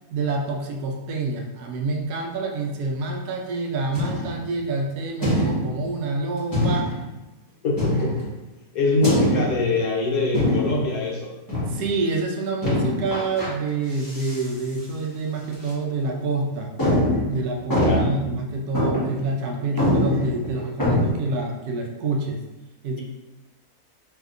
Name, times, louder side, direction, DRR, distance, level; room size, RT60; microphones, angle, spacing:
voice 1, 0.1-6.9 11.7-16.7 17.3-22.4 22.8-23.0, right 3 dB, 80° right, 2 dB, 1.1 m, -27 dB
sound 1, 3.9-4.5 5.2-5.8 6.5-7.1 7.8-8.3 9.0-9.7 10.3-10.9 11.5-11.9 12.6-13.5 13.9-14.5 14.8-14.9 15.5-15.7 16.2-16.3 16.8-18.3 18.7-19.2 19.5-19.6 19.8-21.1, left 1 dB, 15° left, 1.0 m, -23 dB
voice 2, 7.6-8.2 8.7-11.3 17.8-18.0, left 3 dB, 70° left, -3 dB, 1.2 m, -23 dB
3.4 x 2.8 x 2.4 m, 1.1 s
omnidirectional pair, 1.6 m